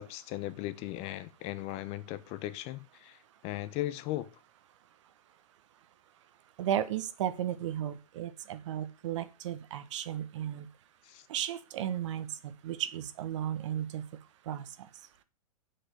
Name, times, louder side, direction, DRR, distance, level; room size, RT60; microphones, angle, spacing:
voice 1, 0.0-4.3 11.0-11.3, left 15 dB, 35° left, 0.9 m, -38 dB
voice 2, 6.6-10.7 11.3-14.0 14.5-14.6, right 10 dB, 55° right, 1.3 m, -34 dB
7.9 x 6.2 x 8.0 m
figure-of-eight pair, 110°, 19 cm